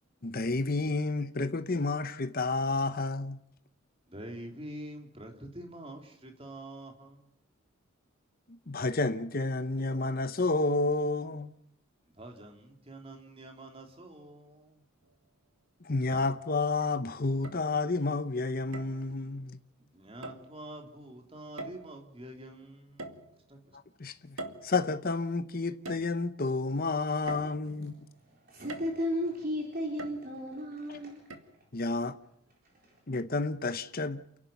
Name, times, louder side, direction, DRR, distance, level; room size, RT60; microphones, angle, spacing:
voice 1, 0.2-3.4 8.5-11.5 15.8-19.6 24.0-24.4 24.6-28.0 30.9-31.0 31.7-32.2 33.1-34.2, left 3 dB, 45° left, 0.8 m, -30 dB
voice 2, 4.1-7.3 12.1-14.8 19.8-23.8, right 1 dB, 25° right, 3.5 m, -46 dB
sound 1, 15.0-15.1 16.1-16.7 17.4-18.1 18.7-19.1 20.2-20.5 21.6-22.1 23.0-23.7 24.4-25.2 25.9-26.5 27.3-28.0 28.7-29.2 30.0-30.6 31.3-31.4, right 2 dB, 85° right, 2.2 m, -44 dB
voice 3, 27.9-31.8 32.6-33.0, equal, 45° right, 4.0 m, -36 dB
29.0 x 11.0 x 9.3 m
head